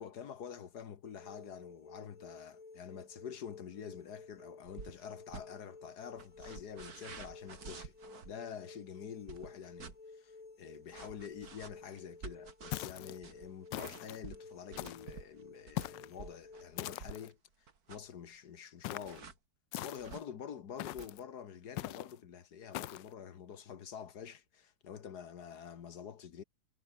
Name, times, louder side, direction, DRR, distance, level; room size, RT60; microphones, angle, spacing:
voice 1, 0.0-8.0 8.3-17.4 17.9-19.3 19.8-26.4, left 8 dB, 65° left, 1.8 m, -47 dB
sound 1, 1.0-16.9, left 3 dB, 50° left, 3.6 m, -54 dB
sound 2, 4.7-5.0 5.3-5.5 6.2-8.3 9.3-10.0 10.9-17.3 17.7-18.1 19.0-19.3 20.0-20.2 20.8-21.1, right 5 dB, 55° right, 2.6 m, -49 dB
sound 3, 12.7-13.2 13.7-14.2 14.8-15.2 15.8-16.1 16.8-17.3 18.8-19.2 19.7-20.2 20.8-21.2 21.8-22.1 22.7-23.1, left 16 dB, 85° left, 1.3 m, -41 dB
omnidirectional pair, 1.9 m